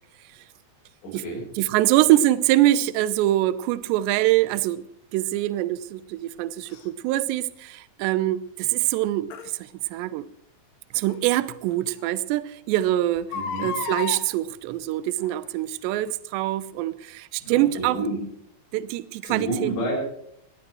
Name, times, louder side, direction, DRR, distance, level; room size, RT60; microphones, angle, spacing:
voice 1, 1.0-1.4 13.3-13.7 17.4-18.2 19.2-20.0, right 2 dB, 85° left, 8.8 m, -29 dB
voice 2, 1.6-4.8 5.1-9.3 9.6-10.3 10.9-13.3 13.6-18.0 18.7-19.7, right 14 dB, 80° right, 2.8 m, -24 dB
Crying sobbing, 6.7-6.8 9.3-9.5 11.1-11.2 11.7-11.8 12.0-12.1 13.2-14.2 15.2-15.5 16.1-16.2, left 7 dB, 65° left, 3.4 m, -32 dB
20.5 x 18.5 x 3.1 m
omnidirectional pair, 5.5 m